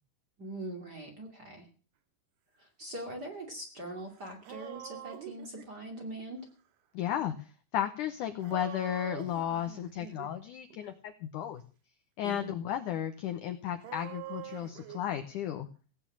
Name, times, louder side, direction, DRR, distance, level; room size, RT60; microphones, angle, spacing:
voice 1, 0.4-1.7 2.6-6.4 12.2-12.5, right 1 dB, 30° right, 3 dB, 2.4 m, -42 dB
sound 1, 4.0-4.1 4.3-6.1 8.4-10.4 10.7-10.9 13.8-15.0, right 11 dB, 75° right, 3.4 m, -45 dB
voice 2, 6.9-11.6 12.2-15.7, left 10 dB, 75° left, 8 dB, 1.9 m, -34 dB
17.0 x 9.2 x 7.3 m, 0.38 s
omnidirectional pair, 4.8 m